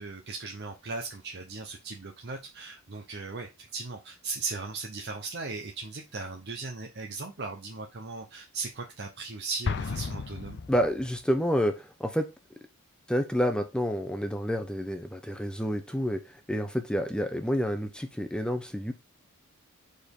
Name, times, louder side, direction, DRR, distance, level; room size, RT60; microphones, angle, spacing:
voice 1, 0.0-10.6, right 4 dB, 50° right, 3 dB, 0.8 m, -38 dB
Explosion, 9.6-11.3, left 4 dB, 50° left, 0.5 m, -34 dB
voice 2, 10.7-12.3 13.1-16.2 16.5-18.9, equal, 5° left, 7 dB, 0.8 m, -29 dB
5.1 x 4.3 x 5.3 m, 0.25 s
head